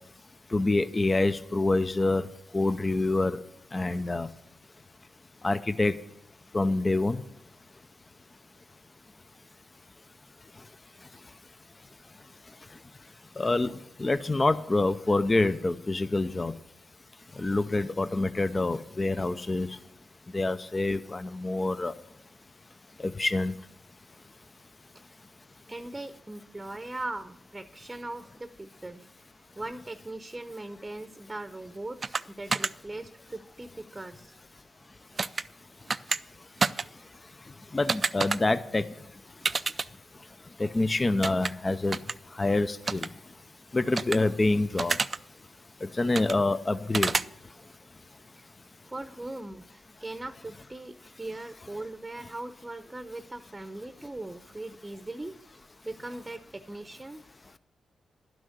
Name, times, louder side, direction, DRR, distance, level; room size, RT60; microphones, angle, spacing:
voice 1, 0.5-2.3 2.5-3.4 3.7-4.3 5.4-5.9 6.5-7.2 13.4-13.7 14.0-16.5 17.4-19.7 20.3-21.9 23.0-23.5 37.7-38.8 40.6-42.0 42.4-43.1 43.7-45.0 46.0-47.1, left 2 dB, 30° left, 12 dB, 0.6 m, -26 dB
voice 2, 25.7-29.1 29.5-34.4 48.3-48.4 48.8-55.4 55.8-57.2, right 2 dB, 20° right, 10 dB, 0.8 m, -40 dB
sound 1, 32.0-32.2 32.5-32.7 35.2-35.4 35.9-36.2 36.6-36.8 37.9-38.4 39.4-39.9 41.2-41.5 41.9-42.1 42.9-43.1 44.0-44.2 44.8-45.2 46.1-46.3 46.9-47.2, right 4 dB, 45° right, 0.4 m, -28 dB
11.5 x 6.2 x 8.0 m, 0.77 s
supercardioid pair, 45°, 0 cm